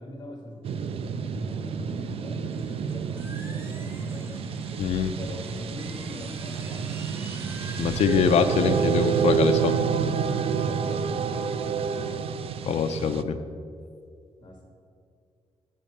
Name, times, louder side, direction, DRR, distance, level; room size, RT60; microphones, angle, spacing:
voice 1, 0.0-4.5 5.0-7.5 10.6-12.3 14.4-14.6, left 1 dB, 30° left, 0 dB, 1.2 m, -41 dB
sound 1, 0.6-13.2, right 7 dB, 55° right, 0.4 m, -28 dB
sound 2, 2.5-9.8, right 1 dB, 20° right, 0.8 m, -47 dB
voice 2, 4.8-5.1 7.8-9.7 12.7-13.4, left 7 dB, 70° left, 6 dB, 0.4 m, -23 dB
7.5 x 5.2 x 6.6 m, 2.3 s
wide cardioid pair, 160°, 12 cm